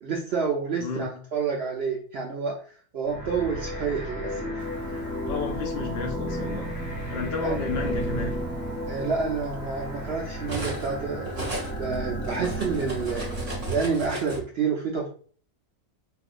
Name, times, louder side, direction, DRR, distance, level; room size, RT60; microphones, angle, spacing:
voice 1, 0.0-2.5 2.9-4.6 7.4-7.6 8.9-11.4 11.8-13.3 13.7-15.1, right 5 dB, 65° right, 0.6 m, -29 dB
sound 1, 3.1-13.8, equal, 15° left, 0.7 m, -33 dB
Cutlery silverware, 4.9-6.1 7.1-7.3 7.7-11.0 11.2-14.4, right 2 dB, 30° right, 0.9 m, -36 dB
voice 2, 5.3-6.7 7.1-8.4, left 5 dB, 75° left, 0.5 m, -32 dB
4.2 x 2.5 x 2.4 m
omnidirectional pair, 1.6 m